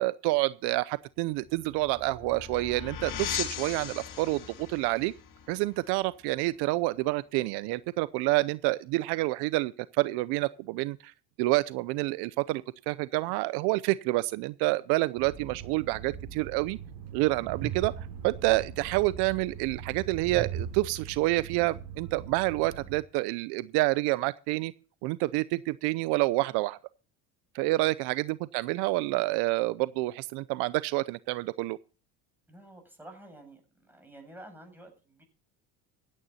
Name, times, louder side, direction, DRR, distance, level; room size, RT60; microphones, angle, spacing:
voice 1, 0.0-5.1 5.5-11.1 11.4-16.8 17.1-24.7 25.0-26.8 27.5-31.8, right 20 dB, 75° right, 0.7 m, -28 dB
sound 1, 1.3-6.7, left 9 dB, 50° left, 2.3 m, -39 dB
Train, 15.2-23.0, right 8 dB, 60° right, 5.3 m, -40 dB
voice 2, 32.5-35.2, right 1 dB, 5° right, 7.7 m, -50 dB
15.5 x 9.9 x 4.2 m
supercardioid pair, 105°, 40 cm